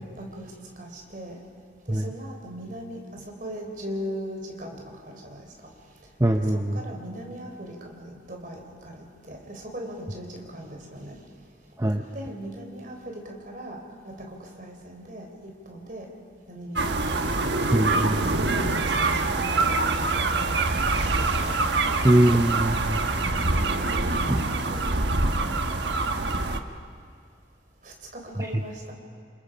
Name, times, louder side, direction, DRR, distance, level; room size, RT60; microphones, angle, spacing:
voice 1, 0.2-0.5 0.8-1.4 1.9-4.8 5.1-5.4 6.5-8.6 9.2-11.2 12.0-13.8 14.0-15.3 15.7-16.1 16.5-17.2 18.2-21.6 21.9-22.0 22.3-22.4 23.2-23.6 23.9-26.0 27.8-28.9, equal, 45° right, 1 dB, 4.0 m, -39 dB
voice 2, 6.2-6.8 11.8-12.0 17.7-18.4 22.0-23.0 24.3-24.4, right 1 dB, 15° right, 4 dB, 0.7 m, -22 dB
sound 1, 16.8-26.6, right 3 dB, 70° right, 1.3 m, -25 dB
28.0 x 28.0 x 5.1 m, 2.2 s
head